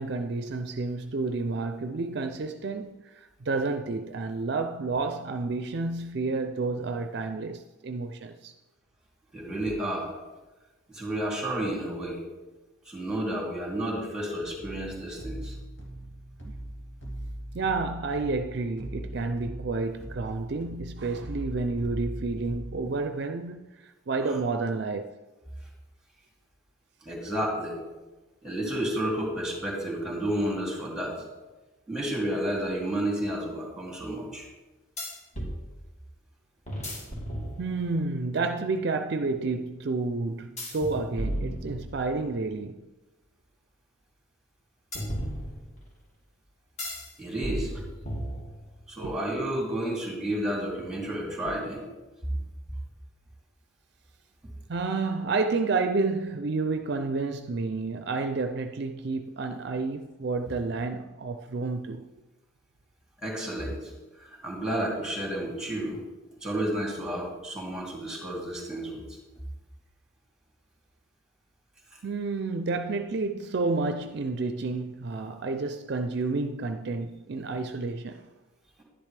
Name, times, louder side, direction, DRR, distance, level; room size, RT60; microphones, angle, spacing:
voice 1, 0.0-8.6 16.4-16.5 17.5-25.1 37.6-42.8 49.0-49.1 54.7-62.1 72.0-78.3, right 3 dB, 55° right, 0.4 m, -30 dB
voice 2, 9.3-10.1 10.9-12.2 12.8-15.6 24.2-24.4 27.0-27.8 28.4-31.1 31.9-34.5 47.2-47.8 48.9-51.9 63.2-63.9 64.2-66.0 66.4-69.2, right 1 dB, 5° right, 2.6 m, -31 dB
sound 1, 14.4-22.9, right 1 dB, 60° left, 2.6 m, -40 dB
sound 2, 32.5-32.6 35.0-35.6 36.7-38.0 40.6-42.3 44.9-45.9 46.8-47.1 47.4-48.8, equal, 35° left, 2.2 m, -34 dB
11.0 x 10.5 x 3.3 m
head